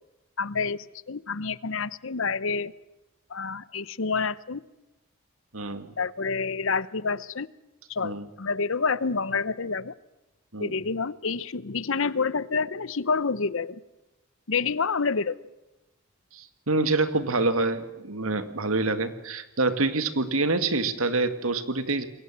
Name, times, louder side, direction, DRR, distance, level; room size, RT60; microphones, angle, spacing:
voice 1, 0.4-0.8 1.1-2.7 3.3-4.6 6.0-7.5 7.9-9.9 10.6-13.8 14.5-15.3, left 4 dB, 65° left, 18 dB, 0.8 m, -28 dB
voice 2, 5.5-5.9 8.0-8.2 10.5-10.7 16.3-22.0, right 3 dB, 85° right, 10 dB, 2.1 m, -26 dB
28.0 x 22.5 x 7.5 m, 1.0 s
head